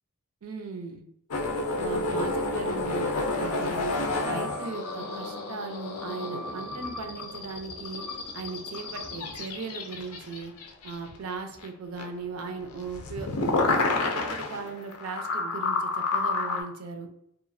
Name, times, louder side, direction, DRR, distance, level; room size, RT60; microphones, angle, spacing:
voice 1, 0.4-1.0 1.8-3.9 4.2-8.0 8.3-10.5 10.8-17.1, right 4 dB, 75° right, 5 dB, 0.5 m, -38 dB
sound 1, 1.3-11.3 11.6-11.7 12.0-16.6, left 3 dB, 85° left, 0.5 m, -30 dB
2.9 x 2.4 x 2.5 m, 0.74 s
head